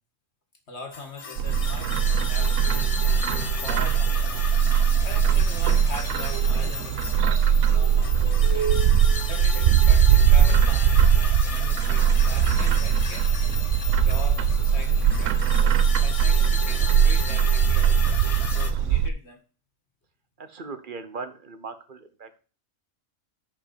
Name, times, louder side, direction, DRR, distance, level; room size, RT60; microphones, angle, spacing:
voice 1, 0.7-13.4 14.0-19.4, left 3 dB, 55° left, 4 dB, 2.2 m, -42 dB
sound 1, 0.9-18.7, left 5 dB, 35° left, 0.7 m, -35 dB
Bird, 1.4-19.1, right 8 dB, 70° right, 1.0 m, -20 dB
voice 2, 20.4-22.4, right 4 dB, 40° right, 10 dB, 1.1 m, -39 dB
6.9 x 5.3 x 7.1 m, 0.37 s
omnidirectional pair, 1.4 m